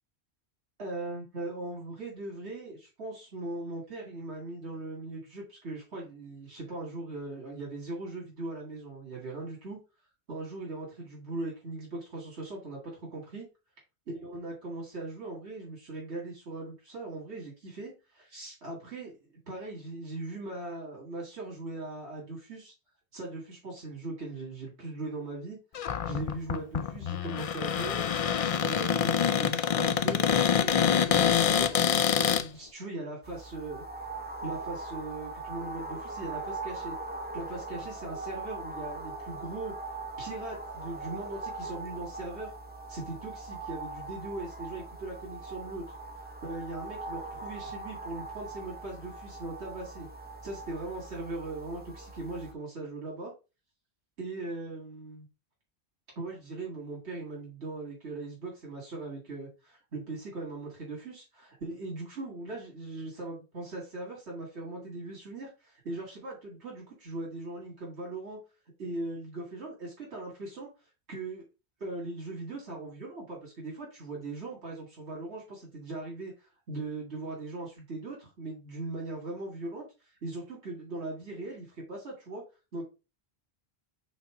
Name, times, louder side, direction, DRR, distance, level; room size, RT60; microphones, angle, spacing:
voice 1, 0.8-9.8 10.3-13.5 14.2-22.7 23.1-25.6 26.0-28.1 28.6-33.8 34.4-37.0 37.3-39.8 40.2-42.5 42.9-50.1 50.4-53.3 54.2-55.3 56.2-68.4 68.8-70.7 71.1-71.5 71.8-82.4 82.7-82.8, right 2 dB, 80° right, -2 dB, 2.3 m, -39 dB
Cupboard open or close, 25.7-32.4, left 8 dB, 60° left, 0.3 m, -26 dB
sound 1, 33.2-52.5, right 3 dB, 10° right, 1.0 m, -41 dB
5.7 x 3.8 x 4.7 m, 0.29 s
omnidirectional pair, 1.1 m